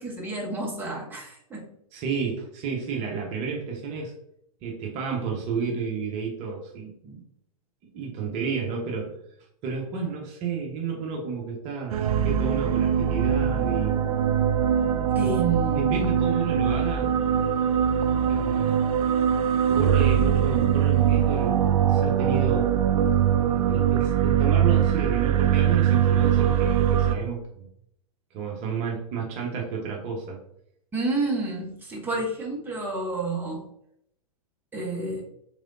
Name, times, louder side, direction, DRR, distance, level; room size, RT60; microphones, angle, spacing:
voice 1, 0.0-1.7 15.1-16.1 30.9-33.6 34.7-35.2, right 3 dB, 10° right, -2 dB, 1.0 m, -29 dB
voice 2, 1.9-4.1 4.6-7.2 7.9-9.2 9.6-14.0 15.2-15.3 15.7-17.1 18.3-18.8 19.7-22.7 23.5-27.7 28.3-30.4, right 5 dB, 35° right, -1 dB, 0.8 m, -31 dB
sound 1, 11.9-27.1, right 9 dB, 70° right, 0.4 m, -22 dB
3.7 x 3.2 x 2.6 m, 0.74 s
hypercardioid pair, 110°, 19 cm